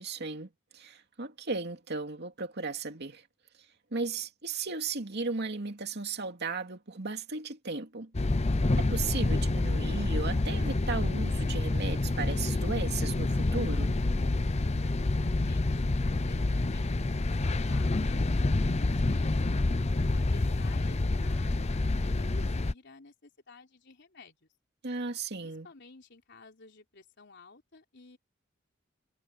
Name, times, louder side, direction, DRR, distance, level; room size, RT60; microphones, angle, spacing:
voice 1, 0.0-3.3 3.9-8.1 8.8-13.9 24.8-25.7, right 4 dB, 55° right, 2.5 m, -36 dB
sound 1, 8.1-22.7, left 2 dB, 35° left, 0.6 m, -28 dB
voice 2, 14.8-19.4 20.1-24.5 25.4-28.2, left 3 dB, 60° left, 3.9 m, -54 dB
head